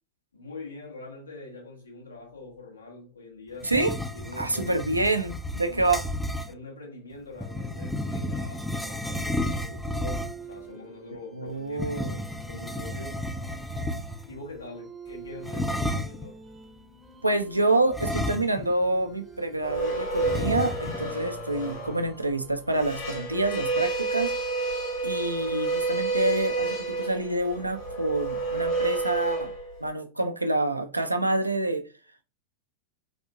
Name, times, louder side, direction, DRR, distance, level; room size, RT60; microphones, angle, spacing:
voice 1, 0.3-3.7 4.1-4.8 5.6-5.9 6.5-13.2 14.3-16.5, left 3 dB, 75° left, 1.8 m, -44 dB
sound 1, 3.6-6.5 7.4-10.5 11.7-14.4 15.4-16.3 17.9-18.8 19.1-19.2 20.2-21.1, left 1 dB, 5° left, 0.4 m, -32 dB
voice 2, 3.6-3.9 4.4-6.0 11.4-12.2 17.2-24.3 25.0-29.5 29.8-31.9, right 2 dB, 85° right, 0.5 m, -27 dB
sound 2, 7.8-22.9, right 4 dB, 10° right, 0.8 m, -49 dB
sound 3, 19.6-29.9, right 3 dB, 55° left, 1.7 m, -30 dB
4.1 x 2.5 x 2.6 m
figure-of-eight pair, 90°, 0 cm